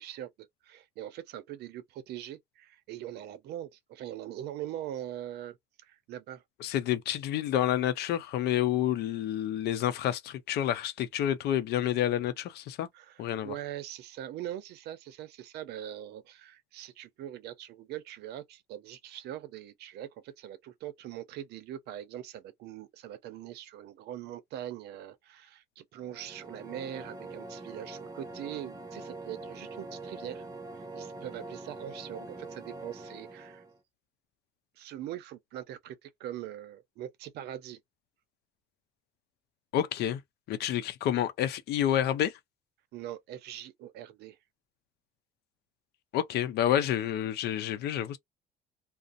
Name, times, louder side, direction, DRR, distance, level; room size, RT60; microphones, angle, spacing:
voice 1, 0.0-6.4 12.9-30.5 30.9-33.6 34.8-37.8 42.9-44.4, right 12 dB, 75° right, 0.6 m, -42 dB
voice 2, 6.6-12.9 13.2-13.5 39.7-40.2 40.5-42.3 46.1-48.2, left 11 dB, 75° left, 0.6 m, -29 dB
sound 1, 26.0-33.8, right 2 dB, 20° right, 0.7 m, -44 dB
2.5 x 2.0 x 2.5 m
cardioid pair, 110°, 17 cm